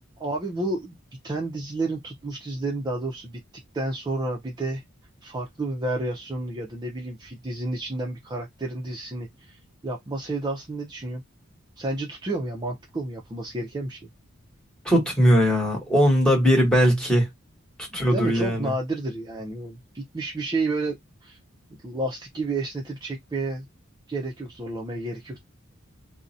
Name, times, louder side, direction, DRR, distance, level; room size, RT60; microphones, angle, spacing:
voice 1, 0.2-1.0 1.2-3.4 3.7-4.8 5.2-11.2 11.8-14.1 17.9-21.4 21.8-23.7 24.1-25.4, right 2 dB, 20° right, 0.4 m, -31 dB
voice 2, 14.8-17.3 17.9-18.7, equal, 5° left, 1.1 m, -20 dB
2.4 x 2.0 x 2.6 m
head